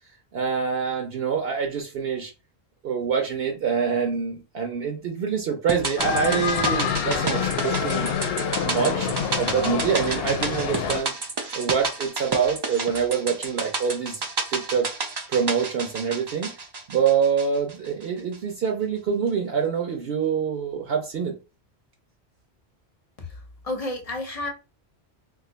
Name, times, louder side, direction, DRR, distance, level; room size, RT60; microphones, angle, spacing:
voice 1, 0.3-2.3 2.8-8.1 8.6-11.1 11.5-14.2 14.5-14.9 15.3-16.5 16.9-21.4, right 6 dB, 65° right, 0.8 m, -25 dB
sound 1, 5.7-18.0 18.3-18.4, right 3 dB, 40° right, 0.4 m, -31 dB
sound 2, 6.0-11.0, left 7 dB, 70° left, 0.8 m, -26 dB
voice 2, 23.2-24.5, left 2 dB, 40° left, 0.7 m, -32 dB
2.5 x 2.4 x 3.8 m
omnidirectional pair, 1.1 m